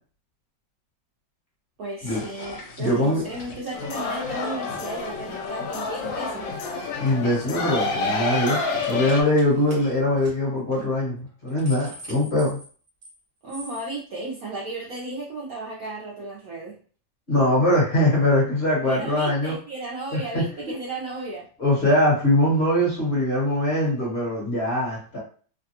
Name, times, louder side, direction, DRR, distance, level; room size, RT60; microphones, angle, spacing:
voice 1, 1.8-6.6 13.4-16.8 18.8-21.4, right 2 dB, 65° right, -5 dB, 0.9 m, -34 dB
sound 1, 2.0-10.0, left 2 dB, 60° left, 1.2 m, -44 dB
voice 2, 2.8-3.2 7.0-8.6 8.8-12.6 17.3-19.5 20.1-20.4 21.6-25.2, left 1 dB, 35° left, -5 dB, 1.4 m, -22 dB
sound 2, 3.7-9.2, left 3 dB, 80° left, 1.4 m, -28 dB
sound 3, 7.4-7.6 7.9-8.2 8.8-9.4 9.7-9.8 10.2-10.3 10.7-10.8 11.3-13.2 13.5-13.9, equal, 45° right, 1.3 m, -43 dB
3.2 x 2.2 x 2.8 m, 0.41 s
omnidirectional pair, 2.1 m